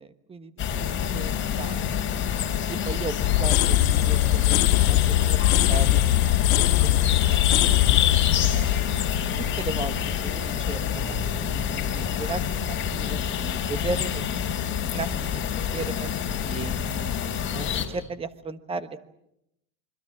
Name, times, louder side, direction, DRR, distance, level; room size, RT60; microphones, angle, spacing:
voice 1, 0.0-1.8 2.7-5.4 5.7-6.0 6.5-6.7 7.2-7.6 8.5-8.9 9.4-10.0 10.2-15.1 15.4-15.5 15.7-16.1 16.5-17.1 17.5-19.0, right 4 dB, 15° right, 11 dB, 1.3 m, -36 dB
sound 1, 0.6-17.9, left 8 dB, 25° left, 4.4 m, -27 dB
sound 2, 3.2-10.1, left 14 dB, 70° left, 2.1 m, -21 dB
26.5 x 25.0 x 7.4 m, 0.82 s
supercardioid pair, 145°, 43 cm